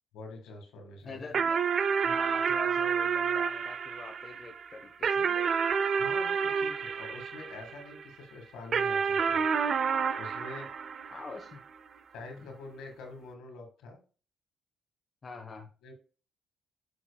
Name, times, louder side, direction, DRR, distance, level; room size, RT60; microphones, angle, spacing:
voice 1, 0.1-1.3 5.3-5.5 6.0-9.4 10.2-10.7 12.1-14.0 15.8-15.9, left 3 dB, 90° left, 4 dB, 1.8 m, -46 dB
voice 2, 1.0-1.6 2.0-5.3 11.1-11.6 12.4-12.5 15.2-15.7, left 3 dB, 35° left, 4 dB, 1.1 m, -44 dB
sound 1, 1.3-8.0 8.7-11.5, right 6 dB, 55° right, 0.5 m, -29 dB
7.1 x 6.0 x 2.3 m, 0.37 s
cardioid pair, 90°, 0 cm